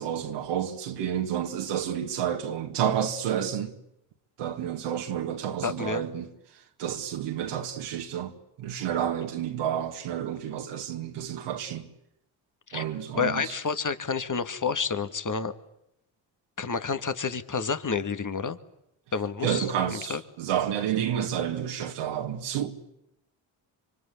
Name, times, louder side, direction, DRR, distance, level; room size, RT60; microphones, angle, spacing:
voice 1, 0.0-3.7 4.4-6.3 6.8-11.9 12.7-13.4 19.4-22.7, right 9 dB, 80° right, 2.2 m, -30 dB
voice 2, 5.6-6.0 12.7-12.8 13.1-15.5 16.6-18.6 19.1-20.2, left 5 dB, 40° left, 2.3 m, -29 dB
26.0 x 24.5 x 8.5 m
hypercardioid pair, 45°, 49 cm